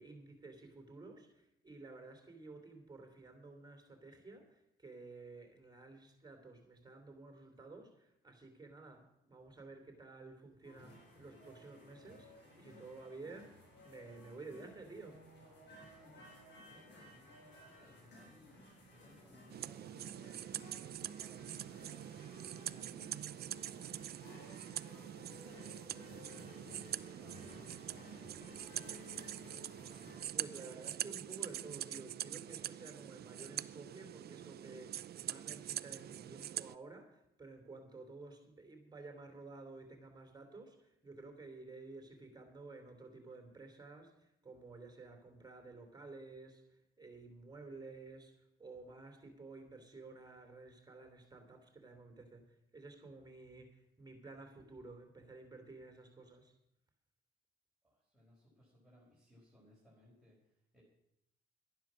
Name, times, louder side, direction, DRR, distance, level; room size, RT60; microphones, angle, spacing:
voice 1, 0.0-15.2 30.3-56.5, right 3 dB, 20° right, 5 dB, 3.0 m, -53 dB
sound 1, 10.6-30.2, left 1 dB, 65° left, 5.7 m, -57 dB
voice 2, 15.8-18.6 18.9-22.1 22.6-24.1 24.4-29.0 57.8-60.8, equal, ahead, -8 dB, 5.5 m, -65 dB
sound 2, 19.5-36.7, right 11 dB, 55° right, 0.5 m, -44 dB
12.0 x 10.5 x 6.3 m, 0.83 s
cardioid pair, 90°, 20 cm